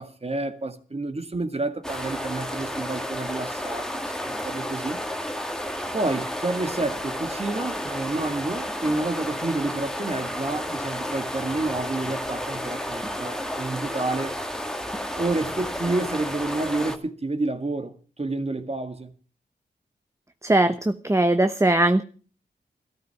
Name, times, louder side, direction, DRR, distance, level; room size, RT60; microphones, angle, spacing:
voice 1, 0.0-5.0 5.9-14.3 15.2-19.1, right 2 dB, 35° right, 2.0 m, -29 dB
sound 1, 1.8-17.0, equal, 5° left, 2.0 m, -31 dB
voice 2, 20.4-22.0, right 1 dB, 15° right, 1.0 m, -20 dB
13.5 x 12.5 x 5.9 m
cardioid pair, 45°, 19 cm